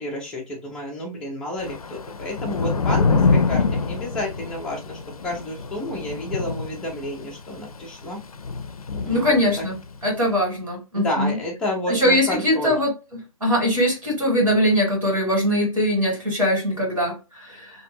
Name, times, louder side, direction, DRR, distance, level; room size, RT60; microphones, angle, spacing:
voice 1, 0.0-8.2 9.0-9.6 10.9-12.8, left 1 dB, 5° left, -2 dB, 0.3 m, -30 dB
Thunder / Rain, 1.6-10.0, left 4 dB, 80° left, 0.4 m, -25 dB
voice 2, 9.1-9.7 10.0-11.4 11.9-12.9 13.4-17.7, equal, 75° right, -3 dB, 1.7 m, -21 dB
2.6 x 2.4 x 2.7 m, 0.27 s
figure-of-eight pair, 130°, 18 cm